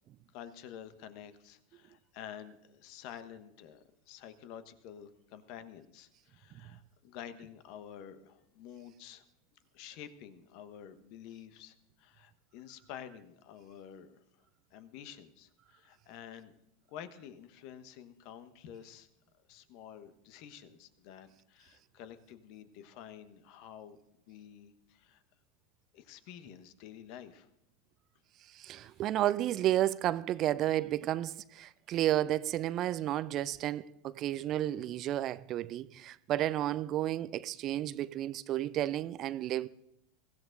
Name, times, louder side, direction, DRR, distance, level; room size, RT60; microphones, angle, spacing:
voice 1, 0.3-9.2 9.7-14.4 14.7-16.5 16.9-19.1 19.5-24.0 24.3-25.2 25.9-27.5 28.8-29.0, left 9 dB, 50° left, 1.1 m, -50 dB
voice 2, 28.5-39.7, right 13 dB, 40° right, 0.5 m, -32 dB
23.5 x 16.0 x 2.6 m
figure-of-eight pair, 85°, 0 cm